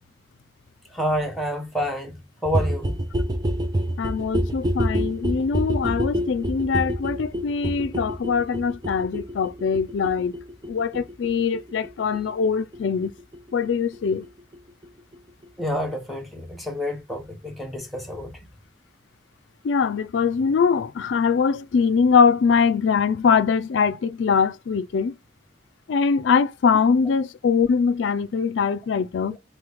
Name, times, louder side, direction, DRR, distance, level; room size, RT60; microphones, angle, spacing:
voice 1, 0.9-3.0 15.6-18.3 29.3-29.4, equal, ahead, 0.9 m, -28 dB
sound 1, 2.4-14.0 14.2-14.3 14.5-14.6 14.8-14.9 15.1-15.2 15.4-15.5 15.7-15.8, equal, 20° right, 0.4 m, -28 dB
voice 2, 4.0-10.3 10.7-13.1 13.5-14.2 19.6-25.1 25.9-29.4, left 5 dB, 75° left, 0.4 m, -22 dB
4.0 x 3.0 x 3.4 m
head